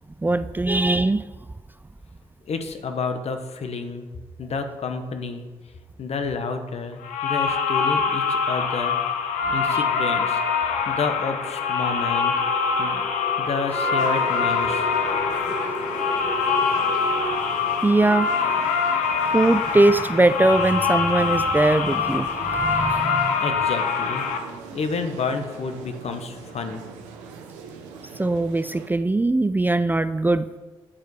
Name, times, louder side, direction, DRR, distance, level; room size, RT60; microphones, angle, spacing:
voice 1, 0.2-1.2 17.8-18.3 19.3-23.4 28.2-30.6, right 2 dB, 15° right, 12 dB, 0.4 m, -21 dB
voice 2, 2.4-4.1 4.4-5.5 6.0-9.0 9.5-10.4 10.9-12.3 12.8-13.0 13.4-14.9 23.4-24.2 24.7-26.8, left 4 dB, 60° left, 7 dB, 0.9 m, -30 dB
sound 1, 7.0-24.4, left 5 dB, 80° left, 0.7 m, -24 dB
sound 2, 8.2-19.4, equal, 25° left, 1.9 m, -36 dB
sound 3, 14.0-28.9, right 5 dB, 90° right, 0.7 m, -41 dB
8.8 x 4.6 x 4.6 m, 1.3 s
hypercardioid pair, 45°, 12 cm